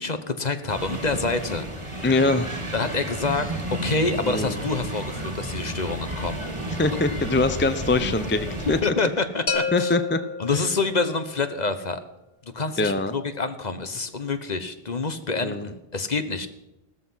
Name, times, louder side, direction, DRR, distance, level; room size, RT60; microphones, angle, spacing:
voice 1, 0.0-1.7 2.7-6.4 6.8-7.0 8.8-10.0 10.4-12.0 12.4-16.5, left 3 dB, 45° left, 10 dB, 1.2 m, -27 dB
sound 1, 0.7-8.8, right 1 dB, 30° right, 2.0 m, -32 dB
voice 2, 2.0-2.6 4.2-4.6 6.8-8.8 9.7-10.2 12.8-13.1 15.4-15.7, left 2 dB, 15° left, 10 dB, 0.5 m, -23 dB
sound 2, 9.5-11.3, left 5 dB, 60° left, 1.5 m, -30 dB
15.0 x 13.5 x 5.7 m, 0.94 s
omnidirectional pair, 1.0 m